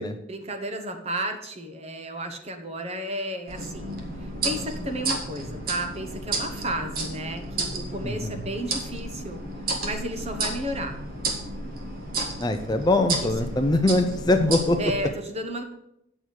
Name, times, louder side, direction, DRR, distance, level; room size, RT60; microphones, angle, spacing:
voice 1, 0.3-4.0 4.4-9.4 9.8-11.0 13.2-13.3 14.8-15.6, right 1 dB, 30° right, 6 dB, 1.1 m, -32 dB
sound 1, 3.5-15.1, right 2 dB, 45° right, 1.6 m, -32 dB
voice 2, 8.0-8.4 12.4-14.8, left 2 dB, 20° left, 7 dB, 0.5 m, -22 dB
8.7 x 6.2 x 6.5 m, 0.82 s
head